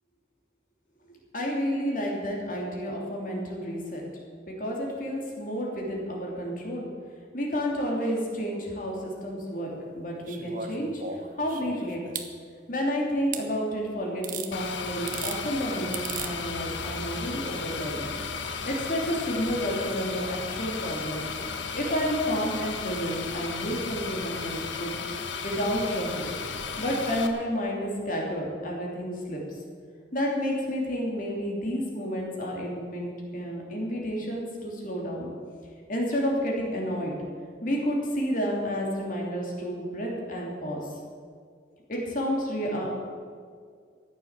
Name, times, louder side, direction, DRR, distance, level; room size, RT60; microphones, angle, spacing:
voice 1, 1.1-4.0 4.5-6.9 7.3-12.0 12.7-18.1 18.6-21.3 21.7-24.9 25.4-26.3 26.8-29.4 30.1-35.3 35.9-37.2 37.6-40.9 41.9-42.9, equal, 45° left, -1 dB, 3.0 m, -30 dB
sound 1, 10.3-12.3 13.3-13.4 14.2-14.5 14.9-15.4 15.9-16.3 17.6-17.7, right 6 dB, 45° right, 1.1 m, -36 dB
sound 2, 14.5-27.3, left 5 dB, 90° left, 1.2 m, -34 dB
14.5 x 10.0 x 7.4 m, 2.1 s
head